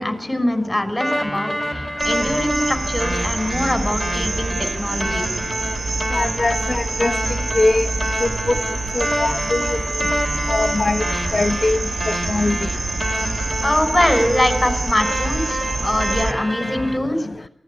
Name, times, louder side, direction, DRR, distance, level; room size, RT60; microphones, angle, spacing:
voice 1, 0.0-5.2 13.6-17.3, left 1 dB, 15° left, 9 dB, 6.2 m, -22 dB
sound 1, 1.0-17.0, equal, 15° right, 4.1 m, -27 dB
sound 2, 2.0-16.3, right 3 dB, 80° right, 1.7 m, -27 dB
voice 2, 6.1-7.1 7.5-7.9 8.2-8.5 8.9-9.8 10.5-11.0 11.3-11.8 12.1-12.6, left 2 dB, 50° left, 10 dB, 1.0 m, -21 dB
23.5 x 17.5 x 9.9 m, 0.70 s
cardioid pair, 50°, 0 cm